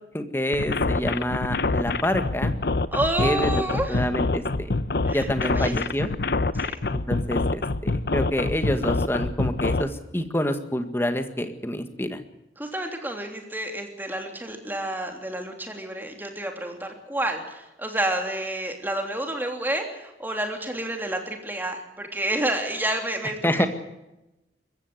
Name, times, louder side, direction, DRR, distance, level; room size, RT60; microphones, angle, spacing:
voice 1, 0.1-2.5 3.2-3.6 3.9-4.7 5.1-6.1 6.9-12.2 23.4-23.7, equal, 15° left, 8 dB, 1.8 m, -27 dB
sound 1, 0.5-9.8, left 3 dB, 60° left, 0.8 m, -25 dB
voice 2, 2.9-4.0 5.1-5.3 5.5-5.9 6.5-6.8 12.6-23.7, right 1 dB, 10° right, 3 dB, 3.2 m, -29 dB
22.5 x 15.0 x 8.0 m, 0.95 s
head